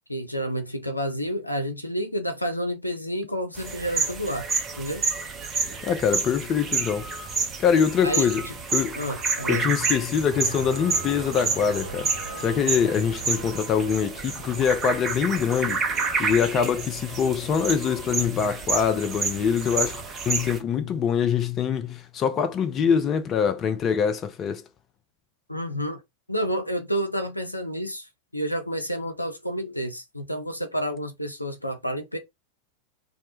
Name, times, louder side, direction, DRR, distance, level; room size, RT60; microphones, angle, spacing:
voice 1, 0.1-4.5 4.8-5.0 8.0-8.5 9.0-9.7 25.5-26.0 26.3-32.2, equal, 85° left, 0.5 m, -30 dB
sound 1, 3.6-20.6, right 4 dB, 20° right, 0.6 m, -29 dB
voice 2, 5.8-7.1 7.6-8.4 8.7-9.0 9.5-12.1 12.4-15.8 16.2-24.6, left 7 dB, 30° left, 0.4 m, -24 dB
sound 2, 10.3-19.9, right 3 dB, 65° right, 0.5 m, -43 dB
2.1 x 2.1 x 2.9 m
figure-of-eight pair, 90°, 0 cm